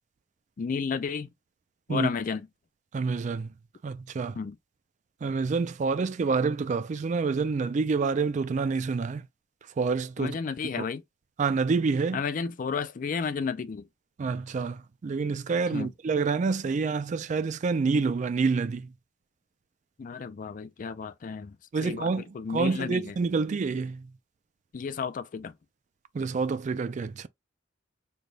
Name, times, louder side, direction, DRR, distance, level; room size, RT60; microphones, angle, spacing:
voice 1, 0.6-1.3 1.9-2.5 4.4-4.6 10.2-11.0 12.1-13.8 15.7-15.9 20.0-21.6 21.8-23.1 24.7-25.5, left 5 dB, 45° left, 0.4 m, -32 dB
voice 2, 2.9-3.5 3.8-4.4 5.2-9.3 9.8-10.4 11.4-12.2 14.2-18.9 21.7-22.2 22.5-24.1 26.1-27.3, right 4 dB, 40° right, 0.3 m, -27 dB
3.3 x 2.2 x 3.9 m
head